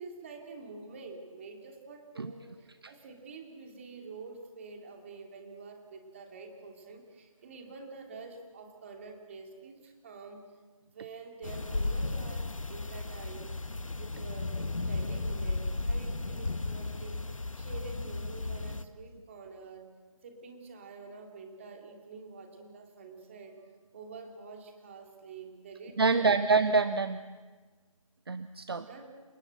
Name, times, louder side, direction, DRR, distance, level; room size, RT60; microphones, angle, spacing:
voice 1, 0.0-10.4 10.9-13.6 14.0-19.9 20.2-23.6 23.9-26.4 28.8-29.1, right 4 dB, 25° right, 3 dB, 2.9 m, -47 dB
sound 1, 11.4-18.8, left 2 dB, 70° left, 1.2 m, -34 dB
voice 2, 26.0-27.2 28.3-28.9, right 4 dB, 45° right, 12 dB, 0.8 m, -26 dB
29.0 x 17.0 x 8.0 m, 1.4 s
figure-of-eight pair, 155°, 17 cm